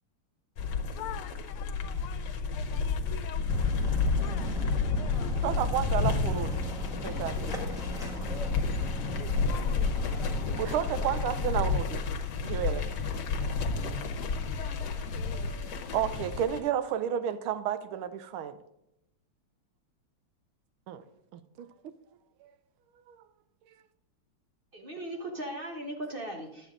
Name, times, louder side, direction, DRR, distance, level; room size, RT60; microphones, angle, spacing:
sound 1, 0.6-16.6, left 4 dB, 60° left, 1.3 m, -31 dB
voice 1, 0.9-3.7 4.1-5.4 8.9-10.6 10.9-11.0 14.2-16.3, left 12 dB, 90° left, 1.5 m, -47 dB
sound 2, 3.5-11.7, left 2 dB, ahead, 0.9 m, -36 dB
voice 2, 5.4-6.6 6.9-7.6 8.2-8.3 10.6-12.0 12.4-12.9 13.8-14.1 15.3-18.6 20.9-21.0 21.3-21.7 22.4-22.5 23.1-23.2, right 10 dB, 80° right, 1.5 m, -32 dB
voice 3, 24.7-26.7, right 1 dB, 45° right, 0.7 m, -38 dB
11.0 x 8.0 x 3.7 m
omnidirectional pair, 2.4 m